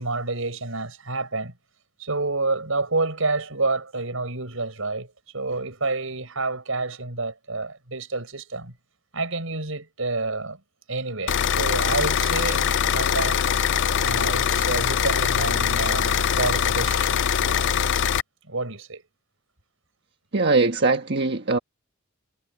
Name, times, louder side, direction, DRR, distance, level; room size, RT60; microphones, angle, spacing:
voice 1, 0.0-1.5 2.0-8.7 9.1-10.6 10.9-13.5 14.0-17.4 18.5-19.0, right 3 dB, 80° right, 5.8 m, -29 dB
sound 1, 11.3-18.2, left 8 dB, 60° left, 0.5 m, -22 dB
voice 2, 20.3-21.6, right 3 dB, 55° right, 1.4 m, -21 dB
head